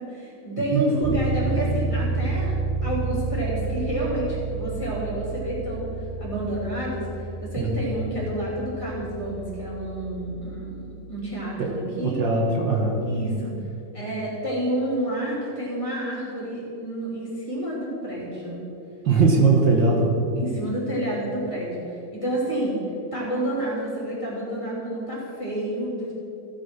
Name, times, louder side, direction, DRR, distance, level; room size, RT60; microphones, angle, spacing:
voice 1, 0.0-2.5 2.8-5.9 6.2-7.1 7.4-12.2 13.0-13.5 13.9-18.6 20.4-22.7 23.1-26.1, right 1 dB, 15° left, -6 dB, 3.2 m, -29 dB
Bass guitar, 1.0-10.8, right 3 dB, 15° right, 1.7 m, -30 dB
voice 2, 12.0-13.0 19.1-20.1, right 3 dB, 75° right, -1 dB, 2.2 m, -20 dB
15.0 x 6.2 x 6.2 m, 2.7 s
omnidirectional pair, 2.1 m